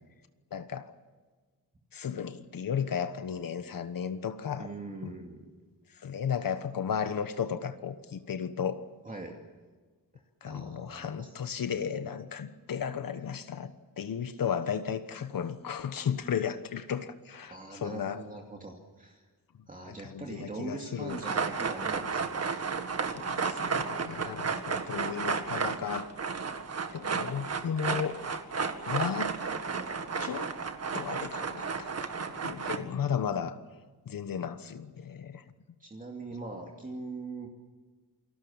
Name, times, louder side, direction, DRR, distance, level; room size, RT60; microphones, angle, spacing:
voice 1, 0.5-0.9 1.9-4.7 5.0-5.1 5.9-8.8 10.4-18.2 19.9-21.2 23.1-26.1 26.9-28.2 28.9-29.4 30.2-30.5 30.9-33.6 34.1-35.4, left 7 dB, 60° left, 10 dB, 1.3 m, -34 dB
voice 2, 4.6-5.5 9.0-9.4 10.4-11.3 17.5-19.2 19.7-22.5 32.7-33.4 35.8-37.5, right 2 dB, 20° right, 0 dB, 2.5 m, -42 dB
sound 1, 21.1-32.8, right 5 dB, 40° right, 1.8 m, -33 dB
28.5 x 19.5 x 7.3 m, 1.4 s
wide cardioid pair, 140°, 39 cm